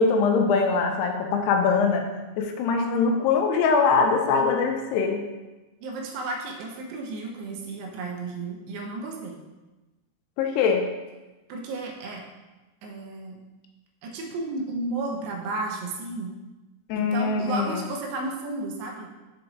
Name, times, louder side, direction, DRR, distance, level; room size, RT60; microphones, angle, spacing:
voice 1, 0.0-2.1 2.4-5.2 10.4-10.9 16.9-17.8, left 5 dB, 85° left, 3 dB, 2.7 m, -22 dB
voice 2, 5.8-9.4 11.5-12.2 12.8-13.4 14.0-16.3 17.0-19.1, right 2 dB, 80° right, 0 dB, 2.9 m, -33 dB
6.9 x 4.7 x 3.8 m, 1.1 s
omnidirectional pair, 4.8 m